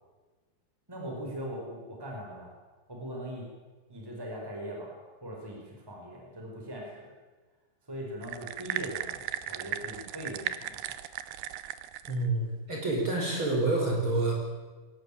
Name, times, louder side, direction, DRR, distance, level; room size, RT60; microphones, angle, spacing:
voice 1, 0.9-2.5 2.9-3.4 3.9-7.1 7.9-10.9, equal, 5° right, -1 dB, 4.6 m, -40 dB
sound 1, 8.2-12.3, right 13 dB, 85° right, 2.9 m, -36 dB
voice 2, 12.1-14.3, right 2 dB, 30° right, -1 dB, 5.7 m, -28 dB
21.0 x 18.5 x 8.7 m, 1.3 s
omnidirectional pair, 4.5 m